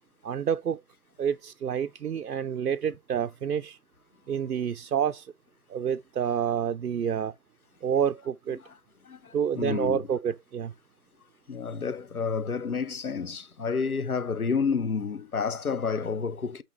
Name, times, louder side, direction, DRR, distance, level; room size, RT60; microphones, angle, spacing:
voice 1, 0.2-0.8 1.2-3.8 4.3-5.3 5.7-7.3 7.8-8.6 9.3-10.7, right 8 dB, 75° right, 0.6 m, -28 dB
voice 2, 9.0-10.0 11.5-16.6, left 5 dB, 65° left, 0.8 m, -30 dB
8.3 x 3.0 x 4.3 m
figure-of-eight pair, 175°, 48 cm